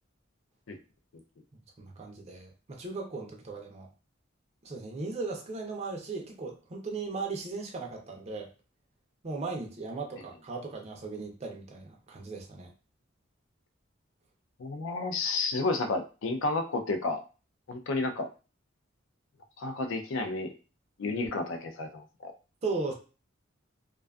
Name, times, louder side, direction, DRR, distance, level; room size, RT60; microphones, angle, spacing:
voice 1, 1.5-3.9 4.6-8.5 9.2-12.7 22.6-22.9, right 3 dB, 35° right, 1 dB, 0.4 m, -37 dB
voice 2, 14.6-17.2 17.7-18.3 19.6-20.5 21.0-22.3, left 3 dB, 70° left, 6 dB, 0.4 m, -31 dB
2.5 x 2.3 x 2.3 m, 0.34 s
head